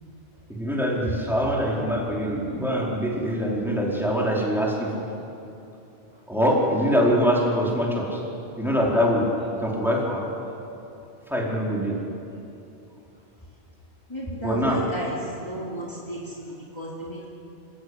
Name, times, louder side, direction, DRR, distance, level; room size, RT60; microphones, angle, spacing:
voice 1, 0.5-5.0 6.3-8.2 8.6-9.3 9.6-10.2 11.3-12.0 14.4-14.8, equal, ahead, -3 dB, 4.8 m, -24 dB
voice 2, 14.1-15.2 15.4-17.3, equal, 25° left, -5 dB, 3.5 m, -33 dB
29.5 x 17.0 x 9.9 m, 2.8 s
omnidirectional pair, 1.1 m